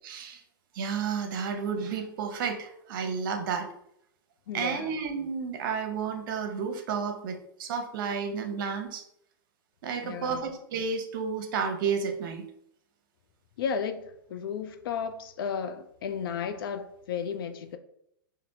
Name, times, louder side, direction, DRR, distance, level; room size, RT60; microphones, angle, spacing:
voice 1, 0.0-0.4 0.7-3.7 4.5-9.0 9.8-12.4, right 6 dB, 60° right, 0.7 m, -31 dB
voice 2, 4.5-5.0 10.0-10.5 13.6-17.8, left 7 dB, 70° left, 0.4 m, -34 dB
4.2 x 2.5 x 2.7 m
hypercardioid pair, 115°, 12 cm